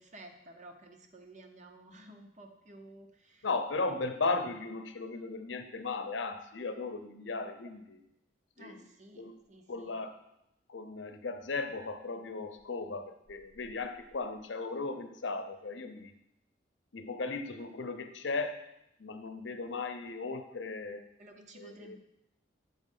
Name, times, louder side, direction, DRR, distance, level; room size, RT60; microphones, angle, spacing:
voice 1, 0.0-3.5 8.6-10.0 21.2-22.0, right 1 dB, 40° right, 4 dB, 0.8 m, -53 dB
voice 2, 3.4-8.0 8.6-8.8 9.2-9.3 9.7-10.2 10.7-16.1 16.9-18.6 19.0-21.0 21.6-22.0, left 3 dB, 75° left, 8 dB, 0.7 m, -36 dB
7.8 x 4.2 x 5.4 m, 0.83 s
head